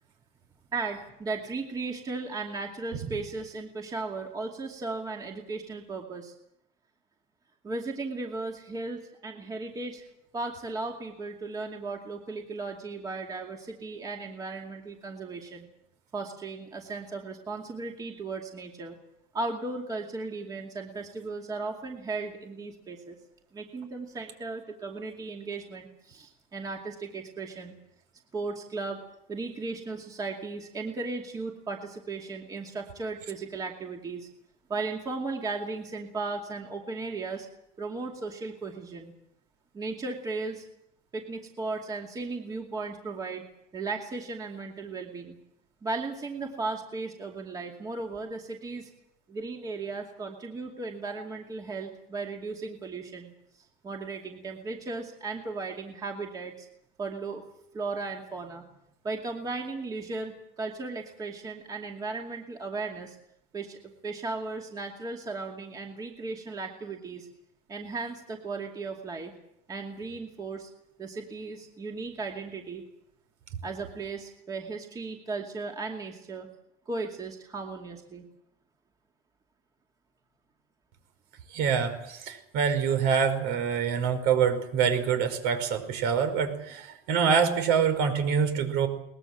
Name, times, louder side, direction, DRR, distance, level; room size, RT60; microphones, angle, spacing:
voice 1, 0.7-6.3 7.6-10.0 10.3-15.7 16.1-19.0 19.3-23.2 23.5-27.7 28.3-29.0 29.3-34.3 34.7-37.5 37.8-39.1 39.7-40.6 41.1-43.4 43.7-45.4 45.8-48.9 49.3-53.3 53.5-56.7 57.0-57.4 57.7-58.6 59.0-63.2 63.5-67.3 67.7-69.3 69.7-70.7 71.0-72.8 73.6-76.5 76.9-78.2, right 3 dB, 20° right, 1 dB, 2.5 m, -36 dB
voice 2, 81.5-88.9, right 6 dB, 65° right, 8 dB, 5.2 m, -25 dB
22.5 x 21.0 x 7.5 m, 0.77 s
cardioid pair, 160°, 19 cm